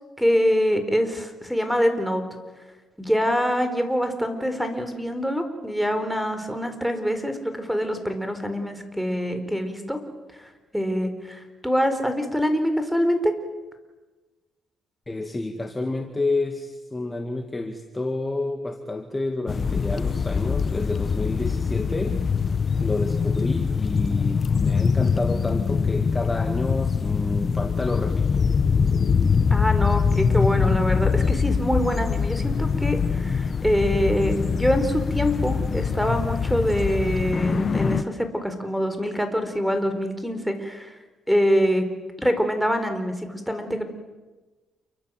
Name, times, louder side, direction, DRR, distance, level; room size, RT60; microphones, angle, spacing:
voice 1, 0.2-2.2 3.0-10.0 10.3-13.3 29.5-41.0 41.3-41.9 42.2-43.8, equal, ahead, 8 dB, 4.6 m, -25 dB
voice 2, 15.1-22.2 22.8-28.3, left 2 dB, 15° left, 5 dB, 2.2 m, -29 dB
sound 1, 19.5-38.0, left 5 dB, 40° left, 1.2 m, -23 dB
29.0 x 23.5 x 7.8 m, 1.2 s
cardioid pair, 90°, 0 cm